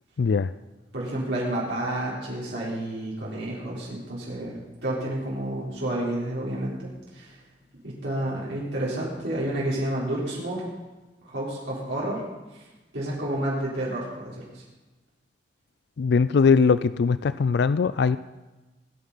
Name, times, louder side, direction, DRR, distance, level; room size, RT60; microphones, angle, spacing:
voice 1, 0.2-0.5 16.0-18.2, left 5 dB, 60° left, 15 dB, 0.4 m, -21 dB
voice 2, 0.9-7.4 7.8-10.6 11.2-12.2 12.9-14.6, right 1 dB, 65° right, -6 dB, 4.0 m, -30 dB
19.5 x 9.6 x 5.6 m, 1.1 s
head